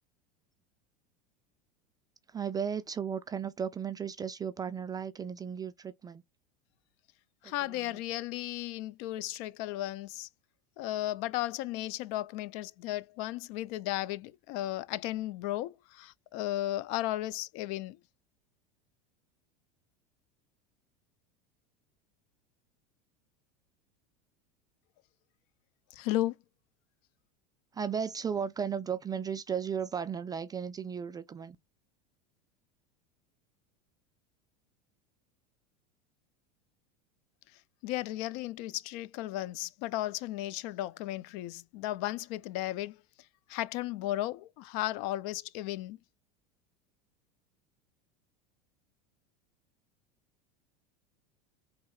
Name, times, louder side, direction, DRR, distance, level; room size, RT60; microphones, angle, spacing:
voice 1, 2.3-6.2 7.4-8.0 27.7-31.6, right 7 dB, 20° right, 0.3 m, -35 dB
voice 2, 7.4-10.3 10.8-18.0 25.9-26.4 37.8-43.0 43.5-46.0, left 15 dB, 55° left, 0.4 m, -35 dB
4.0 x 2.8 x 2.2 m
hypercardioid pair, 90°, 21 cm